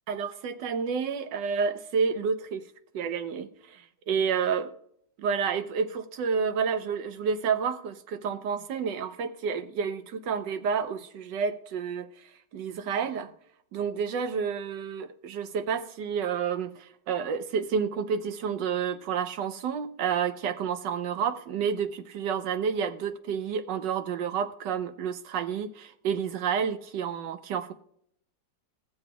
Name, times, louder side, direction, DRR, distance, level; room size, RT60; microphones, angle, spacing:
voice 1, 0.1-2.7 2.9-4.7 5.2-12.1 12.5-13.3 13.7-27.7, right 6 dB, 80° right, 10 dB, 1.4 m, -30 dB
17.5 x 7.2 x 2.3 m, 0.68 s
omnidirectional pair, 1.9 m